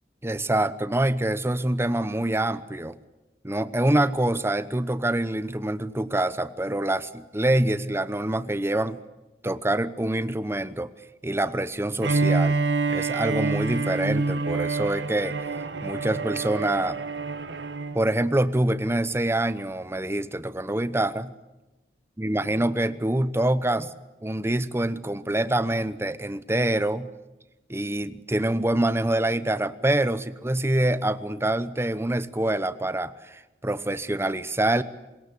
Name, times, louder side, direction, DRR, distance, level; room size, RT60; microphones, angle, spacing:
voice 1, 0.2-3.0 3.4-9.0 9.4-10.9 11.2-12.6 12.9-15.4 15.8-17.0 17.9-21.3 22.2-23.9 24.2-27.1 27.7-34.8, right 1 dB, 15° right, 14 dB, 0.9 m, -25 dB
Bowed string instrument, 12.0-18.0, right 3 dB, 80° right, 1.4 m, -27 dB
25.5 x 21.5 x 8.3 m, 1.1 s
head